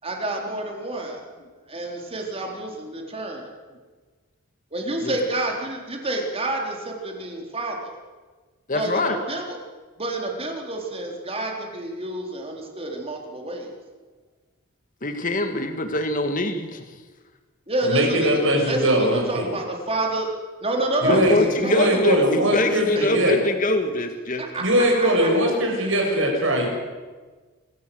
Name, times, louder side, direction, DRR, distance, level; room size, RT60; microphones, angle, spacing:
voice 1, 0.0-1.3 1.7-3.5 4.7-8.0 8.7-9.4 10.0-13.7 17.7-18.4 18.7-20.3 20.6-21.9 22.9-23.0 24.4-25.3, right 2 dB, 30° right, 1 dB, 3.9 m, -29 dB
voice 2, 8.7-9.2 15.0-16.8 21.1-24.5, left 1 dB, 40° left, 6 dB, 1.9 m, -24 dB
voice 3, 17.8-19.4 21.0-23.3 24.6-26.7, equal, 65° right, 1 dB, 7.2 m, -21 dB
26.0 x 15.0 x 7.9 m, 1.4 s
head